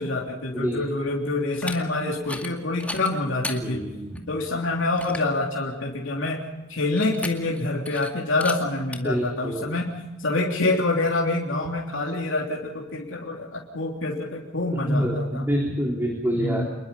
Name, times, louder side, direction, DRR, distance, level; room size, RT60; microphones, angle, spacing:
voice 1, 0.0-3.9 4.3-6.4 6.7-15.4 16.3-16.7, left 2 dB, 70° left, -2 dB, 3.4 m, -26 dB
voice 2, 0.5-0.8 3.6-4.1 9.0-9.7 14.9-16.7, equal, 10° right, 0 dB, 3.6 m, -26 dB
sound 1, 1.5-1.8 2.2-2.5 2.8-3.6 4.1-4.2 4.6-4.7 5.0-5.3 7.0-7.6 7.8-8.1 8.4-8.6 8.9-9.0, left 2 dB, 5° left, 2.3 m, -34 dB
28.0 x 22.0 x 5.6 m, 1.1 s
head